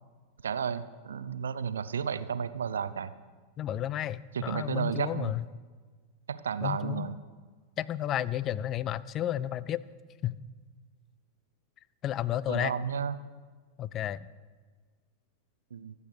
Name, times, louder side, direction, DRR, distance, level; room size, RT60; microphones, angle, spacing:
voice 1, 0.4-3.1 4.3-5.3 6.3-7.2 12.5-13.1 15.7-15.9, right 7 dB, 70° right, 14 dB, 0.7 m, -32 dB
voice 2, 3.6-5.5 6.6-7.1 7.8-9.8 10.2-10.4 12.0-12.7 13.8-14.3, left 11 dB, 30° left, 19 dB, 0.5 m, -32 dB
24.0 x 8.2 x 4.9 m, 1.5 s
figure-of-eight pair, 90°, 0 cm